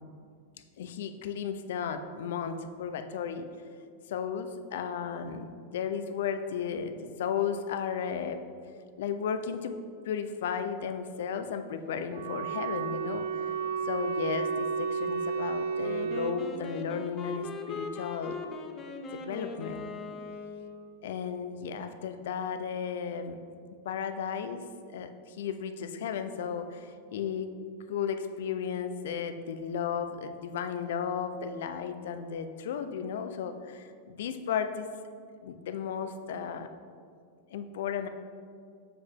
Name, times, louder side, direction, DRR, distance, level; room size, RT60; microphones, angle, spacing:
voice 1, 0.8-3.5 4.1-8.4 9.0-9.8 10.0-13.5 13.9-18.4 19.1-19.9 21.0-23.4 23.8-24.6 24.9-27.5 27.9-34.9 35.4-36.7 37.5-38.1, left 7 dB, 70° left, 9 dB, 0.5 m, -34 dB
Wind instrument woodwind instrument, 12.1-16.4, right 5 dB, 90° right, 0.4 m, -32 dB
Wind instrument woodwind instrument 2, 15.8-21.0, left 4 dB, 20° left, 0.6 m, -40 dB
7.0 x 6.5 x 3.6 m, 2.2 s
supercardioid pair, 150°, 0 cm